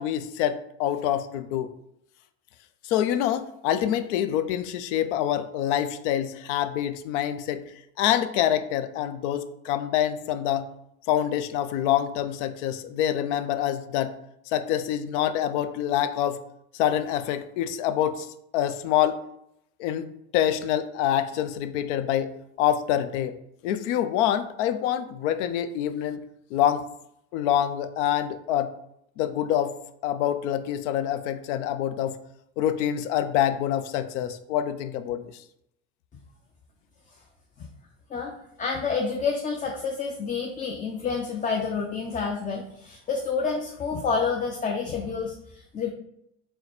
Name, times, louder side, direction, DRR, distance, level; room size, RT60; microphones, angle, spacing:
voice 1, 0.0-1.7 2.8-7.6 8.0-10.7 11.1-14.1 14.5-16.4 16.7-18.3 18.5-19.2 19.8-20.1 20.3-22.3 22.6-23.4 23.6-26.3 26.5-26.9 27.3-28.7 29.2-29.8 30.0-32.2 32.6-35.3, left 10 dB, 80° left, 11 dB, 0.5 m, -26 dB
voice 2, 38.6-45.9, left 5 dB, 25° left, 1 dB, 0.5 m, -29 dB
3.9 x 2.2 x 4.3 m, 0.77 s
supercardioid pair, 90°, 35 cm